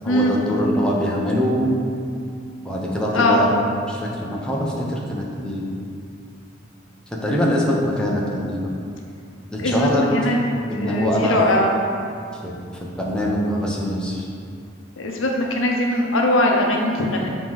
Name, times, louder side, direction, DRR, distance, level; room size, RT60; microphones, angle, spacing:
voice 1, 0.0-1.7 2.6-3.5 3.9-5.6 7.1-8.7 9.5-10.1 10.5-11.4 12.4-14.2, equal, 5° left, -4 dB, 0.8 m, -23 dB
voice 2, 9.6-10.4 10.8-11.7 15.0-17.3, left 1 dB, 85° left, 0 dB, 0.8 m, -20 dB
6.9 x 3.1 x 5.5 m, 2.4 s
head